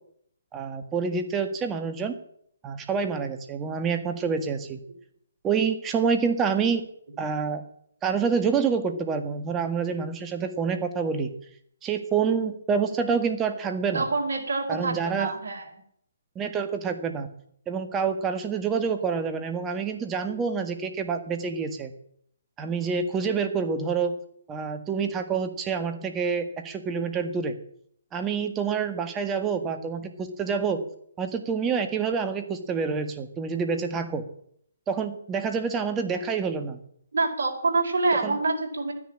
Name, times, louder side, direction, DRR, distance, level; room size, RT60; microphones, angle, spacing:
voice 1, 0.5-2.1 2.6-4.8 5.4-6.8 7.2-7.6 8.0-11.3 11.8-14.0 14.7-15.3 16.3-17.3 17.7-21.9 22.6-24.1 24.5-27.5 28.1-30.8 31.2-34.2 34.9-36.8 38.2-38.4, right 5 dB, 15° right, 7 dB, 1.8 m, -27 dB
voice 2, 13.9-15.7 37.1-38.9, right 3 dB, 70° right, 2 dB, 4.7 m, -26 dB
13.0 x 10.5 x 8.8 m, 0.67 s
hypercardioid pair, 150°, 0 cm